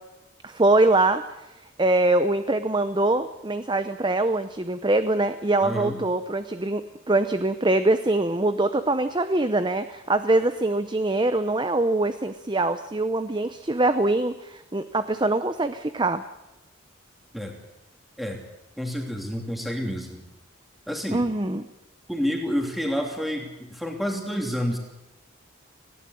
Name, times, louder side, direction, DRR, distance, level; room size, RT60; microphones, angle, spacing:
voice 1, 0.4-1.2 1.8-6.8 7.1-16.2 21.1-21.6, right 2 dB, 20° right, 11 dB, 0.7 m, -23 dB
voice 2, 5.6-6.0 17.3-17.6 18.2-18.4 18.8-20.2 20.9-21.2 22.1-24.8, equal, ahead, 2 dB, 3.1 m, -29 dB
19.0 x 16.5 x 9.6 m, 0.94 s
head